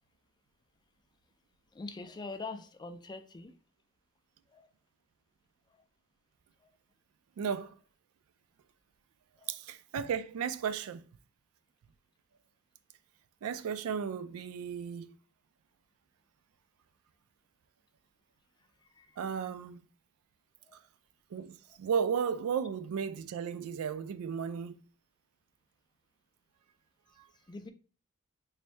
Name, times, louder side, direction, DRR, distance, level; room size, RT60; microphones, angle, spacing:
voice 1, 1.7-3.5 4.5-4.7 6.6-6.7 9.4-9.5 18.8-19.2 20.7-20.8 27.5-27.7, left 3 dB, 20° left, 0.3 m, -44 dB
voice 2, 7.4-7.8 9.5-11.0 13.4-15.2 19.2-19.8 21.3-24.8, right 7 dB, 65° right, 0.3 m, -34 dB
3.2 x 2.6 x 4.3 m
head